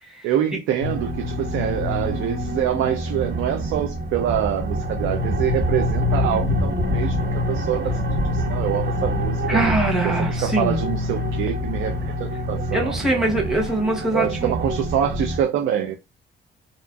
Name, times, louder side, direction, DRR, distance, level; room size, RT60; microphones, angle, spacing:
voice 1, 0.2-8.0 8.3-9.6 10.0-13.3 14.1-16.0, right 10 dB, 90° right, 0.5 m, -25 dB
sound 1, 0.8-15.4, left 1 dB, 60° right, 1.3 m, -25 dB
voice 2, 9.5-10.8 12.7-14.5, right 2 dB, ahead, 0.9 m, -23 dB
2.7 x 2.4 x 2.3 m
cardioid pair, 90°, 20 cm